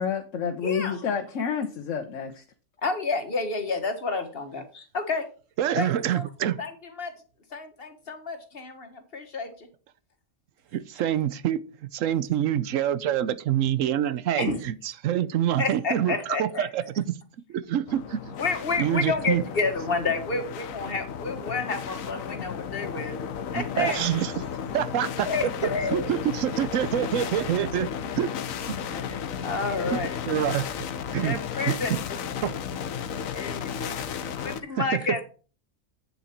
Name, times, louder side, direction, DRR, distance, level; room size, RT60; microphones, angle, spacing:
voice 1, 0.0-2.4, left 6 dB, 70° left, 1.3 m, -29 dB
voice 2, 0.6-1.0 2.8-5.3 5.8-5.9 6.1-6.3 6.6-7.1 7.5-9.7 14.4-14.6 15.6-16.7 18.4-23.2 23.5-24.1 25.3-26.2 28.9-29.0 29.4-30.2 31.2-31.9 33.3-34.1 34.4-35.2, left 4 dB, 45° left, 1.6 m, -30 dB
voice 3, 5.6-6.6 10.7-17.1 17.5-18.4 18.8-19.4 23.5-24.3 24.7-25.5 25.9-27.9 28.1-28.4 28.7-28.8 29.9-30.8 31.1-31.4 31.7-31.8 32.4-32.5 34.8-35.2, right 10 dB, 75° right, 1.0 m, -26 dB
sound 1, 17.9-34.6, left 8 dB, 85° left, 1.2 m, -34 dB
8.7 x 7.0 x 4.3 m
omnidirectional pair, 1.4 m